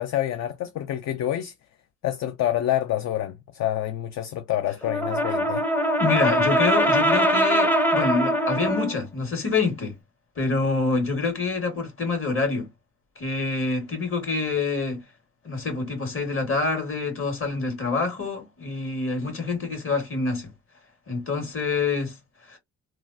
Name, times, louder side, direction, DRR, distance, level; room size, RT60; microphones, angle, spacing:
voice 1, 0.0-1.5 2.0-5.6, left 12 dB, 60° left, 0.5 m, -27 dB
Brass instrument, 4.8-9.0, equal, 5° left, 0.5 m, -22 dB
voice 2, 6.0-9.9 10.3-12.7 13.1-15.0 15.4-20.5 21.1-22.1 22.5-22.6, left 4 dB, 45° left, 1.8 m, -26 dB
3.1 x 2.4 x 2.6 m
cardioid pair, 90°, 30 cm